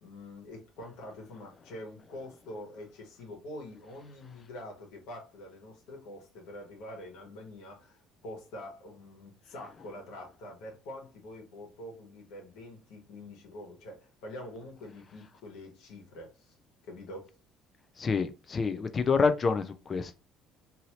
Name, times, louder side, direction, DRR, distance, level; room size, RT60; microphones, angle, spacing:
voice 1, 0.0-16.5 16.8-17.4, left 1 dB, 85° left, 1.3 m, -45 dB
voice 2, 18.0-20.1, left 5 dB, 35° left, 0.5 m, -27 dB
2.7 x 2.7 x 3.0 m
cardioid pair, 105°, 0 cm